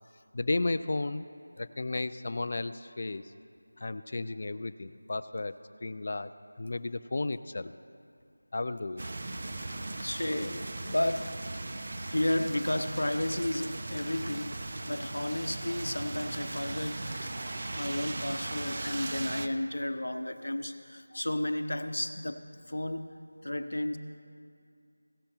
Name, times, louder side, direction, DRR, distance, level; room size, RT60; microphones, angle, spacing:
voice 1, 0.3-1.3 1.6-3.3 3.8-6.3 6.6-7.7 8.5-9.0 21.1-21.2, left 2 dB, 40° left, 13 dB, 0.3 m, -33 dB
sound 1, 9.0-19.5, right 2 dB, 40° right, 0.6 m, -38 dB
voice 2, 10.0-11.4 12.1-17.3 17.7-22.4 22.7-23.0 23.4-24.0, left 1 dB, 75° left, 9 dB, 0.8 m, -32 dB
17.0 x 6.5 x 4.4 m, 2.4 s
figure-of-eight pair, 175°, 0 cm